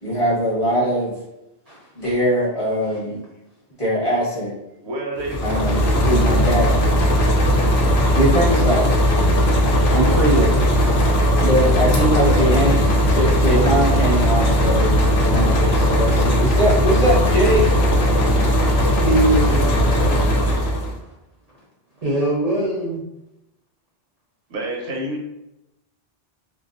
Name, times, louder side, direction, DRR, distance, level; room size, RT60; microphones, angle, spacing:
voice 1, 0.0-1.1 1.9-3.2 3.8-4.6 5.4-6.8 8.1-8.9 9.9-10.6 11.4-15.0 15.3-17.7, equal, 35° left, 0.9 m, -21 dB
voice 2, 4.8-5.7 12.0-12.4 24.5-25.2, right 1 dB, 80° right, 0.9 m, -28 dB
sound 1, 5.2-21.0, equal, 80° left, 0.8 m, -17 dB
voice 3, 19.0-19.9 20.7-21.1 22.0-23.0, right 1 dB, 45° right, 0.6 m, -22 dB
2.4 x 2.2 x 2.4 m
omnidirectional pair, 1.1 m